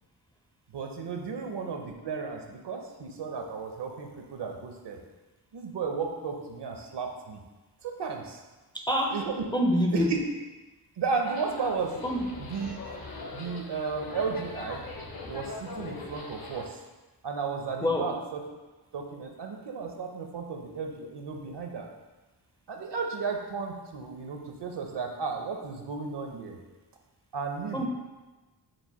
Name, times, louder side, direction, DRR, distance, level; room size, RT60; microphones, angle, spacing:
voice 1, 0.7-5.0 5.5-7.4 7.8-8.4 9.1-9.4 9.9-10.2 11.0-12.0 12.4-13.0 13.3-14.8 15.3-16.8 17.2-18.4 18.9-21.9 22.7-26.6 27.3-27.9, right 5 dB, 65° right, 3 dB, 0.7 m, -34 dB
voice 2, 8.7-9.2 9.5-10.1 12.0-12.5 17.8-18.1 27.7-27.9, equal, 10° left, 1 dB, 0.5 m, -26 dB
sound 1, 11.2-16.6, left 3 dB, 50° left, 0.8 m, -41 dB
4.7 x 2.2 x 4.1 m, 1.2 s
cardioid pair, 55°, 45 cm